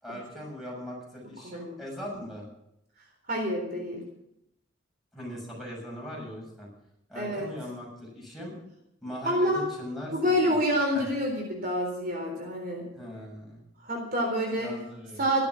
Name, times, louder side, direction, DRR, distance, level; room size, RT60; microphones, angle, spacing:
voice 1, 0.0-2.5 5.1-6.7 7.1-8.6 9.0-10.1 10.4-10.6 10.9-11.1 13.0-13.6 14.5-15.2, equal, ahead, -3 dB, 7.1 m, -40 dB
voice 2, 1.4-1.8 3.3-4.0 7.2-7.5 9.2-9.7 10.1-12.9 13.8-14.7 15.2-15.5, equal, 45° right, 1 dB, 3.9 m, -27 dB
15.0 x 12.5 x 6.2 m, 0.80 s
head